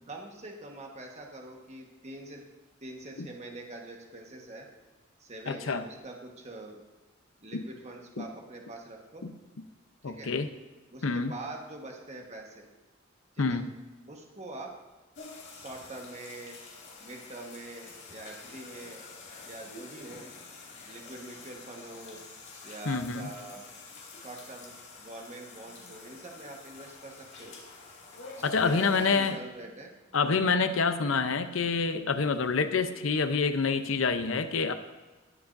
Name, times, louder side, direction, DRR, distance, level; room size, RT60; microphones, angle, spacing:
voice 1, 0.1-2.4 2.8-4.7 5.2-6.8 7.4-9.2 10.0-10.3 10.9-12.7 13.3-13.6 14.1-14.7 15.5-16.6 17.0-19.0 19.4-20.3 20.9-22.2 22.6-23.6 24.1-27.6 28.4-29.9 30.9-31.1, right 2 dB, 35° right, 1 dB, 1.4 m, -44 dB
voice 2, 5.5-5.8 7.5-7.6 8.2-8.3 9.2-9.3 10.0-10.5 11.0-11.3 13.4-13.7 22.9-23.3 28.4-29.4 30.1-34.7, left 4 dB, 80° left, 10 dB, 0.7 m, -27 dB
sound 1, 15.1-29.3, left 4 dB, 60° left, 2.2 m, -48 dB
19.5 x 7.1 x 2.6 m, 1.2 s
head